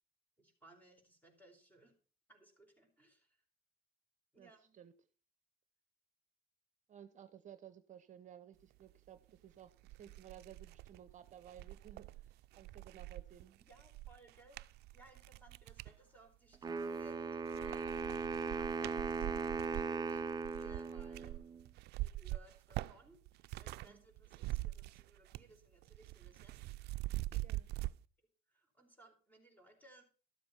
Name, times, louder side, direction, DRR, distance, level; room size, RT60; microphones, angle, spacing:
voice 1, 0.4-1.9 2.3-3.4 4.3-4.8 13.7-18.0 18.5-21.4 22.0-26.9 27.3-27.4 28.5-30.0, right 1 dB, 10° left, 5 dB, 4.4 m, -63 dB
voice 2, 4.4-4.9 6.9-13.6 23.8-24.0 27.4-27.7, right 9 dB, 45° right, 13 dB, 0.9 m, -56 dB
sound 1, 9.3-9.4 9.8-16.0 16.5-17.1 17.4-23.9 24.2-25.6 25.8-27.9, right 18 dB, 75° right, 0.4 m, -44 dB
Wind instrument woodwind instrument, 16.6-21.6, right 4 dB, 25° right, 0.5 m, -39 dB
13.0 x 7.6 x 5.8 m, 0.38 s
cardioid pair, 110°, 17 cm